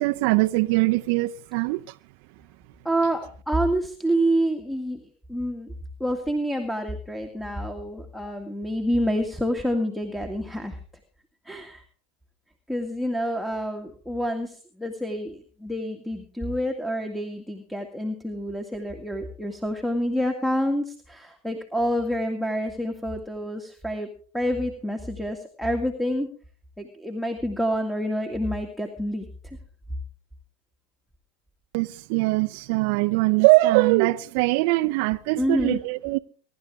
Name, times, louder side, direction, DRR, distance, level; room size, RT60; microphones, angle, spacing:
voice 1, 0.0-1.9 31.7-36.2, right 21 dB, 60° right, 0.6 m, -22 dB
voice 2, 2.8-5.7 6.0-10.8 11.4-11.8 12.7-24.1 24.3-26.3 26.8-29.6 35.4-35.8, equal, ahead, 2.1 m, -28 dB
23.5 x 11.5 x 3.6 m
hypercardioid pair, 100°, 0 cm